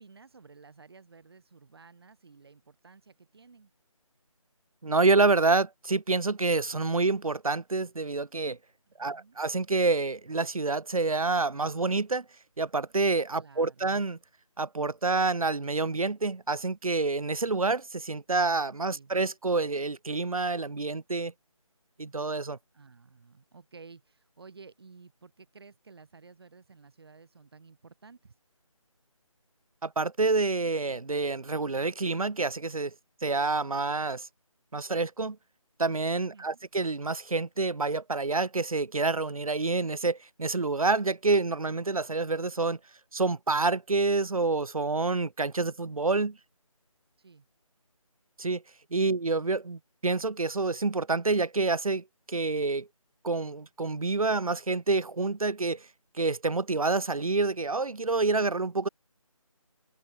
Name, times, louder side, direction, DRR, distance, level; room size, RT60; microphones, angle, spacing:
voice 1, 0.0-3.7 8.9-9.4 13.4-13.9 18.9-19.1 22.7-28.3 36.3-36.6 47.2-47.5 49.0-49.1, right 4 dB, 45° right, 7.4 m, -53 dB
voice 2, 4.8-8.6 9.0-12.2 12.6-14.2 14.6-21.3 22.0-22.6 29.8-32.9 33.2-34.3 34.7-35.4 35.8-42.8 43.1-46.4 48.4-48.6 48.9-52.9 53.2-55.8 56.2-58.9, right 3 dB, 75° right, 1.0 m, -27 dB
figure-of-eight pair, 160°, 18 cm